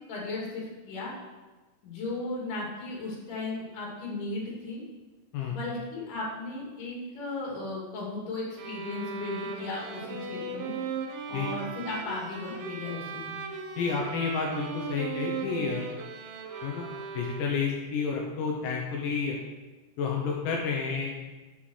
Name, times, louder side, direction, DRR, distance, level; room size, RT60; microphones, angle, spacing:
voice 1, 0.1-1.1 1.8-4.8 5.5-10.8 11.3-13.4, left 2 dB, 50° left, -4 dB, 3.7 m, -36 dB
sound 1, 8.6-17.8, right 5 dB, 80° right, 1.9 m, -38 dB
voice 2, 13.8-15.9 16.6-16.9 17.1-19.4 20.0-21.2, left 5 dB, 85° left, -1 dB, 1.9 m, -30 dB
7.7 x 6.1 x 6.4 m, 1.2 s
omnidirectional pair, 5.1 m